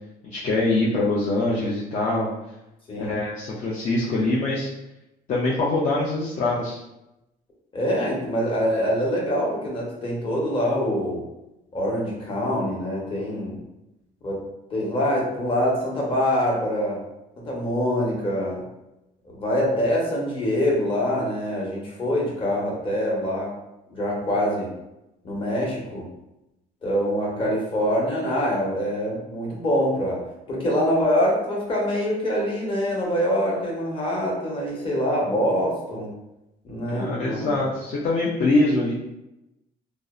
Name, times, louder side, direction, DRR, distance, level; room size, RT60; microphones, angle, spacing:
voice 1, 0.2-2.3 3.0-4.7 5.3-6.8 36.9-39.0, left 2 dB, 45° left, -5 dB, 0.5 m, -23 dB
voice 2, 7.7-11.2 11.7-13.6 14.2-14.4 14.7-17.0 17.5-18.6 19.2-23.5 23.9-24.7 25.2-26.1 26.8-30.2 30.5-36.1 36.6-37.6, equal, 30° left, -3 dB, 0.9 m, -24 dB
2.6 x 2.0 x 2.3 m, 0.91 s
cardioid pair, 110°, 17 cm